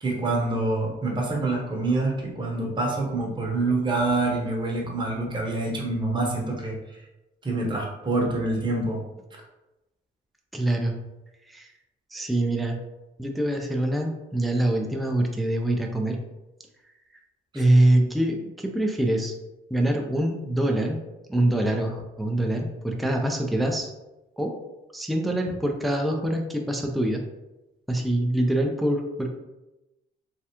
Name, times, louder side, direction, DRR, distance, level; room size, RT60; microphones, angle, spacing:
voice 1, 0.0-6.7 7.4-9.0, right 2 dB, 25° right, -2 dB, 0.9 m, -26 dB
voice 2, 10.5-11.0 11.5-11.7 12.1-12.8 13.2-16.2 17.5-19.3 19.7-21.0 21.3-23.9 24.4-24.5 24.9-27.2 27.9-29.3, right 1 dB, ahead, 2 dB, 0.4 m, -24 dB
3.3 x 2.3 x 2.8 m, 0.99 s
cardioid pair, 90°, 20 cm